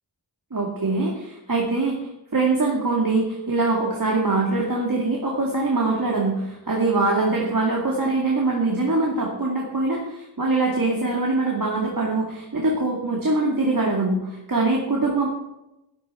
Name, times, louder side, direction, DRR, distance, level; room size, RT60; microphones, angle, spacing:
voice 1, 0.5-15.3, right 3 dB, 50° right, -2 dB, 2.4 m, -23 dB
12.0 x 11.5 x 4.4 m, 0.92 s
wide cardioid pair, 50°, 43 cm